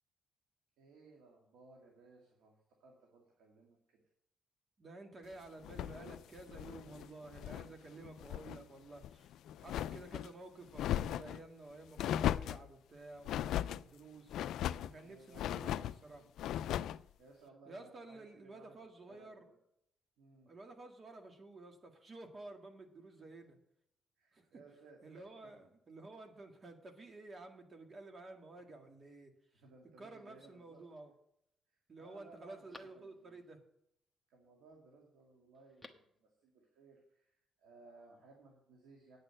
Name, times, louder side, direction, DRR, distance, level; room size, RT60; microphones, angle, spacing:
voice 1, 0.8-4.0 6.9-7.0 15.0-15.7 16.2-16.3 16.8-18.8 19.1-19.6 20.2-20.5 23.3-23.4 24.2-25.5 29.5-30.8 31.7-33.4 34.3-39.2, right 3 dB, 90° right, 0 dB, 2.2 m, -61 dB
voice 2, 4.8-14.4 14.8-16.3 17.7-19.5 20.5-23.6 24.3-24.5 25.0-29.6 30.0-31.1 31.9-33.6, right 2 dB, 40° right, 4 dB, 1.9 m, -52 dB
sound 1, 5.6-7.7 8.0-8.6 9.0-10.3 10.7-11.4 12.0-12.7 13.2-13.8 14.3-14.9 15.3-16.0 16.4-17.0, left 11 dB, 80° left, 0.3 m, -37 dB
Telephone, 30.4-31.0 31.5-31.6 32.0-33.5 35.5-36.2 36.5-36.6, left 2 dB, 5° left, 1.2 m, -60 dB
9.4 x 6.6 x 7.6 m, 0.74 s
cardioid pair, 90°, 0 cm